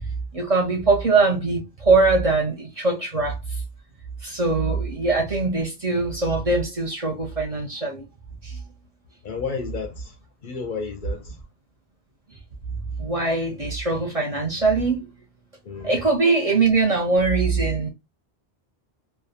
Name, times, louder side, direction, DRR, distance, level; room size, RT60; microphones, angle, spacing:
voice 1, 0.3-3.6 4.2-8.0 8.4-8.6 13.0-15.1 15.8-17.9, right 3 dB, 40° right, 0.6 m, -22 dB
voice 2, 9.2-10.2 10.4-11.4 15.6-16.0, left 5 dB, 60° left, 0.6 m, -32 dB
2.3 x 2.1 x 2.8 m
omnidirectional pair, 1.1 m